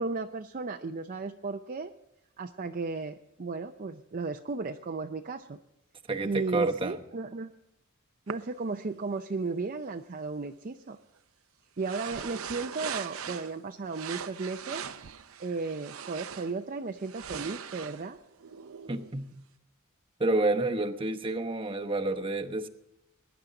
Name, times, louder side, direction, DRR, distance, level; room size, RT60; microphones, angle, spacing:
voice 1, 0.0-1.9 2.4-5.6 6.2-7.5 8.3-11.0 11.8-14.9 15.4-18.2, right 3 dB, 40° right, 4 dB, 0.5 m, -35 dB
voice 2, 6.1-7.0 18.9-19.4 20.2-22.7, right 2 dB, 25° right, 5 dB, 1.0 m, -29 dB
sound 1, 8.3-8.4 11.8-13.6 13.9-16.6 17.0-19.2, right 8 dB, 80° right, 0.7 m, -40 dB
21.5 x 10.5 x 3.8 m, 0.91 s
head